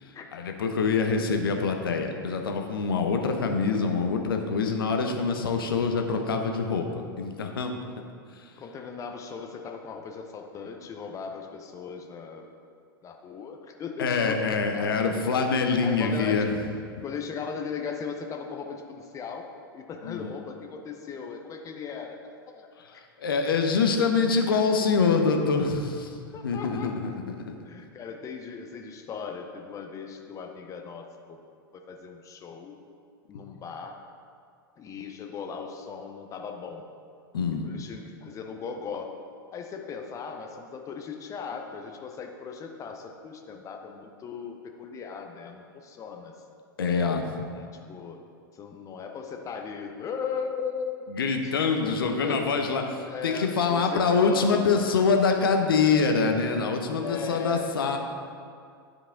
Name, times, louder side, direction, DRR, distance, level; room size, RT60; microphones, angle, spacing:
voice 1, 0.3-6.9 7.2-7.7 14.0-16.5 20.0-20.3 22.9-26.1 26.4-27.1 27.5-27.6 33.3-33.4 37.3-37.7 46.8-47.5 51.1-58.0, left 5 dB, 70° left, 4 dB, 0.8 m, -25 dB
voice 2, 8.6-12.5 13.0-15.0 15.8-16.5 17.0-19.5 19.7-22.7 23.9-24.0 24.8-25.6 26.3-27.2 27.6-32.7 33.3-34.0 34.8-36.8 37.6-39.1 39.5-46.3 47.5-48.2 48.5-51.0 51.4-52.4 53.0-54.9 57.0-58.0, left 6 dB, 25° left, 3 dB, 0.6 m, -38 dB
10.5 x 4.8 x 3.7 m, 2.3 s
figure-of-eight pair, 95°, 12 cm